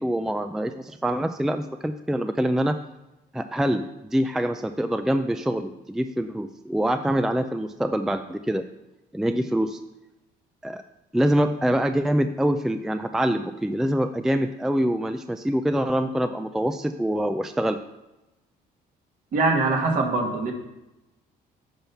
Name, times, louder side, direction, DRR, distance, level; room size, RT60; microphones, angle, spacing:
voice 1, 0.0-2.8 3.3-8.7 9.1-9.8 10.6-10.8 11.1-17.8, equal, 5° right, 8 dB, 0.4 m, -25 dB
voice 2, 19.3-20.5, right 3 dB, 55° right, 1 dB, 2.1 m, -22 dB
8.9 x 5.5 x 5.8 m, 0.96 s
cardioid pair, 110°, 17 cm